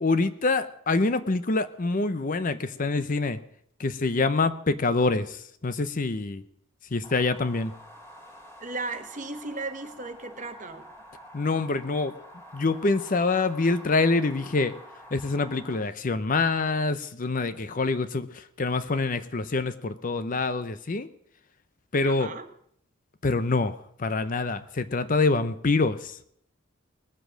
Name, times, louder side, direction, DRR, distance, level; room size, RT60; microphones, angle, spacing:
voice 1, 0.0-3.4 3.8-5.4 5.6-6.4 6.9-7.7 11.3-12.1 12.5-14.7 15.1-18.3 18.6-21.1 21.9-22.3 23.2-26.2, left 3 dB, 40° left, 12 dB, 0.7 m, -25 dB
sound 1, 7.0-15.8, equal, 10° left, 2.7 m, -48 dB
voice 2, 8.6-10.9 22.0-22.5, right 3 dB, 40° right, 7 dB, 1.2 m, -36 dB
20.0 x 7.6 x 6.4 m, 0.69 s
head